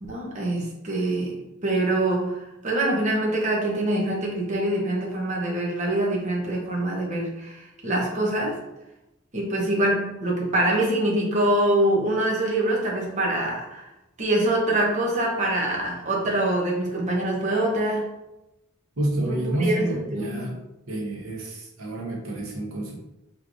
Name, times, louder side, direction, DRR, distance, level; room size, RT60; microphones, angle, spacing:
voice 1, 0.0-1.4 1.6-8.6 9.3-13.9 14.2-18.1 19.3-20.5, right 1 dB, 35° right, -3 dB, 0.8 m, -24 dB
voice 2, 19.0-20.6 20.9-23.0, right 1 dB, 80° right, -2 dB, 1.0 m, -28 dB
4.6 x 3.2 x 2.6 m, 0.93 s
head